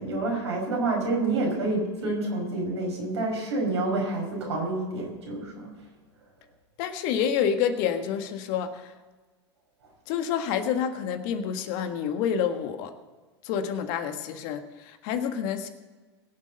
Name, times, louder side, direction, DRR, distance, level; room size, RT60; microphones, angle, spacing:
voice 1, 0.0-5.7, right 2 dB, 80° right, -1 dB, 5.7 m, -28 dB
voice 2, 6.8-8.9 10.1-12.9 13.4-15.7, left 8 dB, 55° left, 8 dB, 1.5 m, -28 dB
21.5 x 7.4 x 5.5 m, 1.3 s
hypercardioid pair, 90°, 14 cm